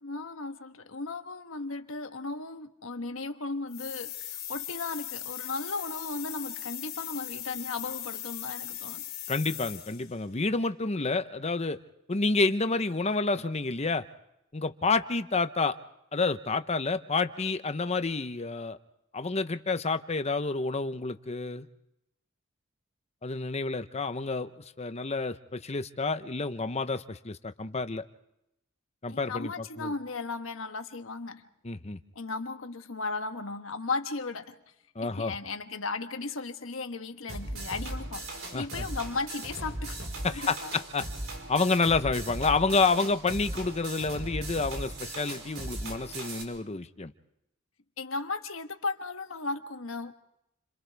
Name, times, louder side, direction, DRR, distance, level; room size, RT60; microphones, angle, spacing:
voice 1, 0.0-9.0 29.1-31.4 32.1-34.6 35.0-40.0 40.3-40.7 48.0-50.1, left 3 dB, 80° left, 7 dB, 1.3 m, -36 dB
sound 1, 3.7-10.1, left 12 dB, 50° left, 2.6 m, -39 dB
voice 2, 9.3-11.8 12.1-14.1 14.5-15.8 16.1-18.8 19.1-21.7 23.2-28.0 29.0-29.9 31.6-32.0 34.9-35.4 38.5-38.9 40.2-41.0 41.5-47.1, left 3 dB, 35° left, 10 dB, 0.9 m, -29 dB
sound 2, 37.3-46.4, right 1 dB, 80° right, 4.6 m, -38 dB
29.5 x 26.5 x 3.5 m, 0.83 s
head